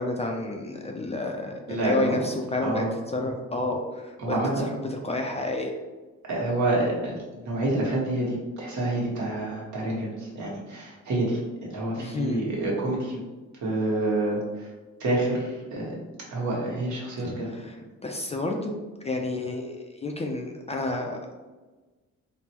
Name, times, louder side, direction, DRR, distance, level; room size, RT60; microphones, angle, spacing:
voice 1, 0.0-2.9 3.1-5.8 12.0-12.5 17.2-17.7 18.0-18.8 19.0-21.4, left 2 dB, 20° left, 2 dB, 0.3 m, -30 dB
voice 2, 1.7-2.2 2.6-2.9 4.2-4.6 6.3-13.2 13.6-14.7 15.0-15.9 16.3-17.5, right 2 dB, 70° right, -3 dB, 1.2 m, -28 dB
3.5 x 2.0 x 2.9 m, 1.2 s
cardioid pair, 90°, 30 cm